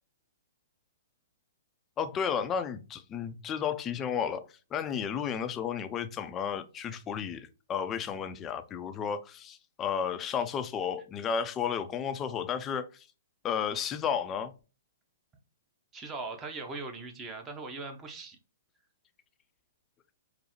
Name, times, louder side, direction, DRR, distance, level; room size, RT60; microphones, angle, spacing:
voice 1, 2.0-4.5 4.7-13.1 13.4-14.5, left 7 dB, 20° left, 0.5 m, -33 dB
voice 2, 15.9-18.4, right 3 dB, 20° right, 0.9 m, -40 dB
5.3 x 2.0 x 3.0 m
hypercardioid pair, 130°, 0 cm